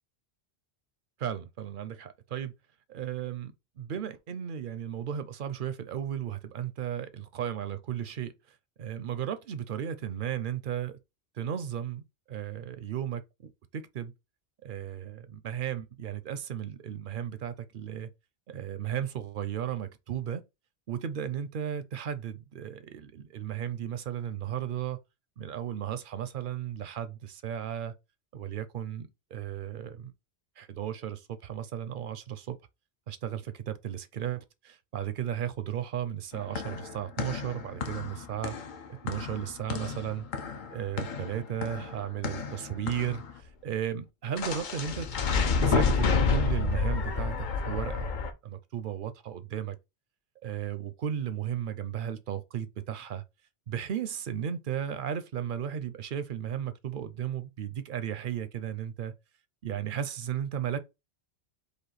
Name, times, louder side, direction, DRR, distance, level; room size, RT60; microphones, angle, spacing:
voice 1, 1.2-2.5 2.9-11.0 11.3-12.0 12.3-13.2 13.7-14.1 14.6-18.1 18.5-20.4 20.9-25.0 25.4-27.9 28.3-30.1 30.6-32.6 33.1-38.6 39.0-40.3 40.7-45.1 45.6-48.1 48.4-49.8 50.4-53.2 53.7-59.1 59.6-60.8, right 9 dB, 60° right, 0.6 m, -35 dB
sound 1, 36.3-43.3 44.4-48.3, left 4 dB, 55° left, 0.6 m, -30 dB
5.1 x 2.3 x 4.0 m
omnidirectional pair, 1.1 m